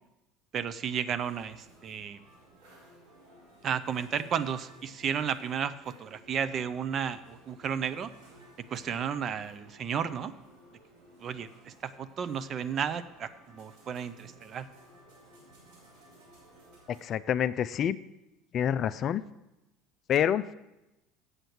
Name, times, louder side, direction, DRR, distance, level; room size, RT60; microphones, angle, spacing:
voice 1, 0.5-2.2 3.6-8.1 8.7-10.3 11.2-14.7, right 7 dB, 45° right, 13 dB, 0.6 m, -33 dB
sound 1, 1.1-17.0, right 1 dB, 80° right, 4.4 m, -57 dB
voice 2, 16.9-18.0 18.5-19.2 20.1-20.5, left 9 dB, 45° left, 15 dB, 0.4 m, -27 dB
8.0 x 7.7 x 6.0 m, 0.95 s
hypercardioid pair, 70°, 0 cm